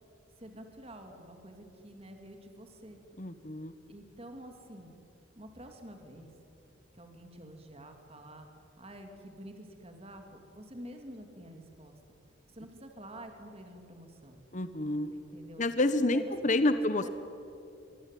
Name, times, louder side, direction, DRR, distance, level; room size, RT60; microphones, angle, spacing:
voice 1, 0.4-3.0 3.9-4.9 5.3-6.3 6.9-8.5 8.8-12.0 12.5-14.4 15.1-15.6 16.1-17.1, right 1 dB, 30° right, 5 dB, 3.0 m, -48 dB
voice 2, 3.2-3.7 14.5-15.1 15.6-17.1, left 2 dB, 40° left, 11 dB, 1.1 m, -28 dB
24.5 x 22.5 x 9.4 m, 2.7 s
head